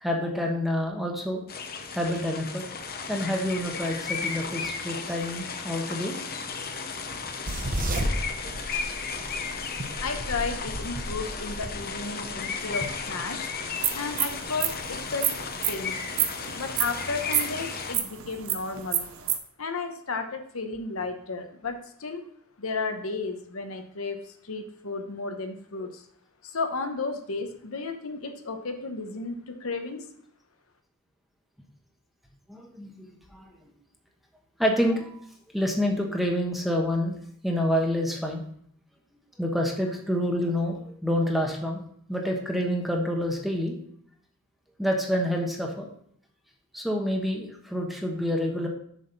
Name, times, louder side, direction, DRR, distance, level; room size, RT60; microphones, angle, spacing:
voice 1, 0.0-1.4 1.9-2.6 3.1-6.2 8.4-8.6 32.5-33.5 34.6-35.2 35.5-37.1 37.4-38.4 39.4-41.8 42.1-43.7 44.8-45.9 46.7-48.7, equal, ahead, 1 dB, 1.1 m, -28 dB
sound 1, 1.5-18.0, left 5 dB, 45° left, 0.8 m, -35 dB
sound 2, 6.9-15.8, right 1 dB, 40° right, 0.9 m, -35 dB
voice 2, 10.0-13.4 13.9-15.3 15.7-16.0 16.6-19.1 19.6-22.2 22.6-26.0 26.4-30.1, left 4 dB, 75° left, 6 dB, 1.0 m, -33 dB
sound 3, 13.8-19.4, right 11 dB, 70° right, 0.8 m, -28 dB
7.2 x 6.3 x 4.0 m, 0.65 s
head